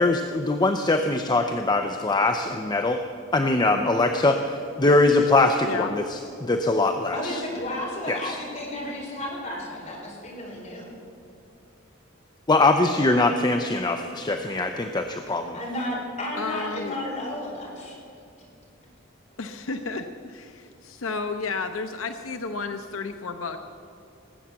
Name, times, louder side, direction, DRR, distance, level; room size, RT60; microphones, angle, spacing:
voice 1, 0.0-3.0 3.3-7.4 8.1-8.4 12.5-15.6, left 2 dB, 20° left, 5 dB, 0.6 m, -22 dB
voice 2, 7.1-10.9 15.5-18.0, left 1 dB, 35° left, -3 dB, 4.5 m, -33 dB
voice 3, 16.4-17.0 19.4-23.6, left 4 dB, 85° left, 7 dB, 0.7 m, -32 dB
19.0 x 8.1 x 7.6 m, 2.5 s
head